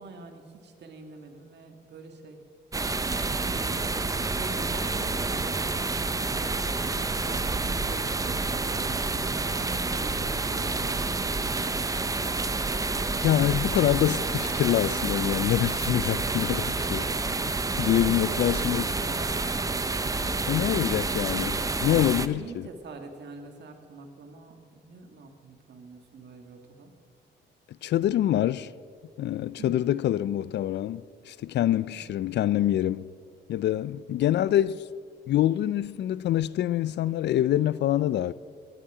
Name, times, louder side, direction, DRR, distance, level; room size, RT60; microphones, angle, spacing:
voice 1, 0.0-2.4 3.4-4.1 4.4-5.7 6.9-11.8 17.8-19.8 22.2-26.9 29.6-30.2 31.7-32.0, right 3 dB, 60° right, 2.0 m, -44 dB
sound 1, 2.7-22.3, right 3 dB, 15° right, 0.6 m, -29 dB
sound 2, 6.0-15.7, equal, 15° left, 3.8 m, -53 dB
voice 2, 13.2-17.1 17.8-18.8 20.5-22.7 27.8-28.7 29.2-33.1 33.5-34.8 35.3-38.3, left 12 dB, 60° left, 0.4 m, -25 dB
19.0 x 10.5 x 4.9 m
cardioid pair, 90°, 20 cm